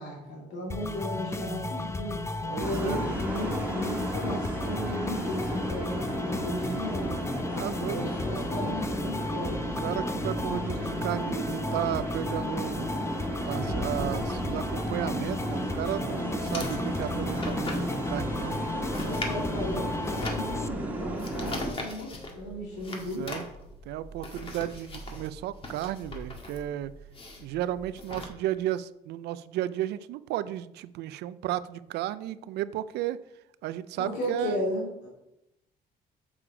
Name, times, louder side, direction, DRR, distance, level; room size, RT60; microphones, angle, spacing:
voice 1, 0.0-2.2 2.6-7.1 7.7-9.5 18.8-23.4 34.0-35.1, left 1 dB, 90° left, -3 dB, 2.5 m, -35 dB
sound 1, 0.7-20.7, left 3 dB, 15° left, 0.5 m, -35 dB
voice 2, 2.4-3.2 7.5-8.1 9.8-12.9 13.4-18.6 21.2-21.4 22.9-23.4 23.9-26.9 27.4-33.2 33.6-34.6, right 13 dB, 80° right, 15 dB, 0.5 m, -34 dB
sound 2, 2.6-21.7, right 1 dB, 10° right, 1.8 m, -33 dB
sound 3, 16.4-28.3, left 2 dB, 35° left, 1.8 m, -41 dB
7.1 x 6.9 x 4.9 m, 0.87 s
cardioid pair, 110°, 17 cm